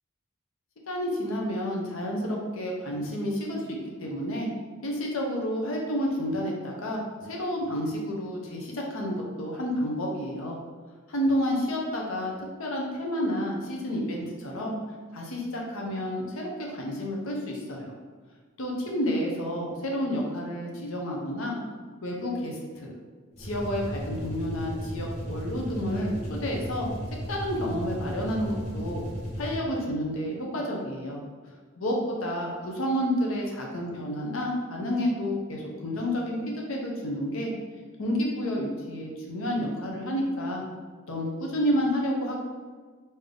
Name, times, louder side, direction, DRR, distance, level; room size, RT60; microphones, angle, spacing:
voice 1, 0.9-4.5 4.8-10.6 11.1-14.8 15.1-17.9 18.6-21.6 22.0-22.9 23.4-26.9 27.3-29.0 29.4-31.2 31.8-37.5 38.0-40.6 41.1-42.4, equal, 75° left, -1 dB, 0.7 m, -30 dB
sound 1, 23.3-29.9, equal, 30° left, 1.3 m, -35 dB
3.4 x 2.7 x 3.6 m, 1.5 s
head